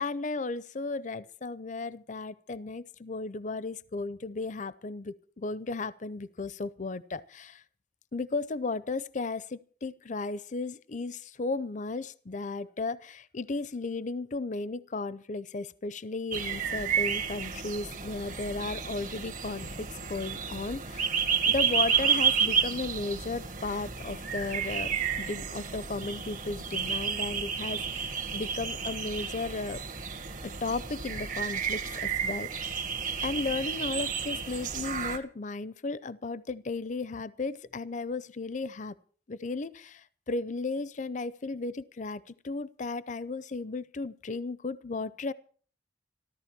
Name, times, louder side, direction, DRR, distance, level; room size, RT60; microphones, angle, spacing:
voice 1, 0.0-7.6 8.1-21.1 21.5-29.8 30.4-32.9 33.2-39.0 39.3-45.3, left 3 dB, 45° left, 17 dB, 0.6 m, -35 dB
sound 1, 16.3-35.2, right 7 dB, 50° right, 1.8 m, -31 dB
14.0 x 13.5 x 6.0 m, 0.44 s
head